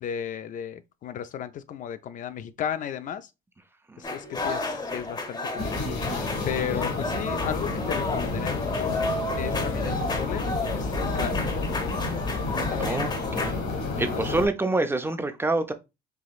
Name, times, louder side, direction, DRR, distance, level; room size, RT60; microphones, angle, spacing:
voice 1, 0.0-3.3 4.0-5.8 6.5-9.0 9.4-10.5 10.7-11.7 12.7-13.1 14.0-14.2, left 9 dB, 50° left, 0.4 m, -34 dB
sound 1, 4.0-13.5, left 2 dB, 25° left, 0.9 m, -32 dB
sound 2, 5.6-14.5, left 3 dB, 75° left, 1.9 m, -30 dB
voice 2, 12.8-13.6 14.0-15.7, right 2 dB, 15° right, 0.4 m, -27 dB
4.7 x 3.0 x 2.3 m
cardioid pair, 110°, 17 cm